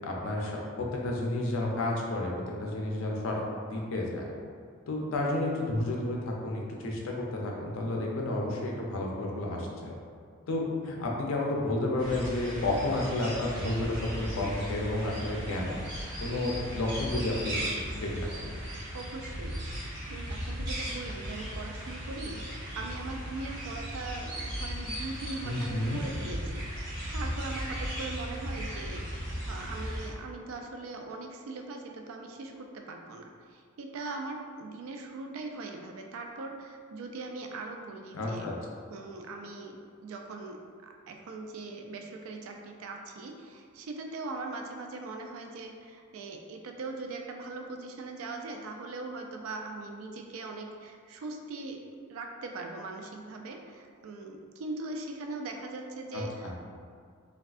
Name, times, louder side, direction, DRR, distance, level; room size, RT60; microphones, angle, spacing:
voice 1, 0.0-2.3 2.6-3.4 3.7-4.3 4.9-9.9 10.5-15.8 16.2-17.6 17.9-18.5 25.4-26.0 38.1-38.5 56.1-56.5, left 2 dB, 70° left, -1 dB, 0.5 m, -31 dB
sound 1, 12.0-30.1, equal, 15° right, 1.4 m, -37 dB
voice 2, 18.9-38.6 38.9-51.8 52.1-56.5, right 3 dB, 75° right, 3 dB, 0.3 m, -40 dB
3.4 x 2.3 x 2.4 m, 2.1 s
head